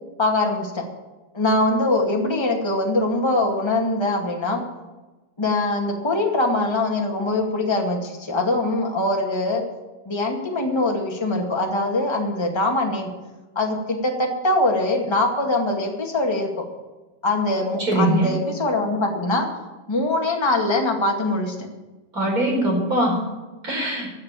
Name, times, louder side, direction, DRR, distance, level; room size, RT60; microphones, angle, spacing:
voice 1, 0.2-0.8 1.3-4.6 5.4-9.6 10.0-13.1 13.5-16.6 17.2-19.5 19.9-21.5, left 2 dB, 20° left, 0 dB, 0.7 m, -22 dB
voice 2, 17.8-18.3 22.1-23.2 23.6-24.1, right 1 dB, 20° right, -1 dB, 4.9 m, -21 dB
15.5 x 7.7 x 9.0 m, 1.1 s
omnidirectional pair, 4.5 m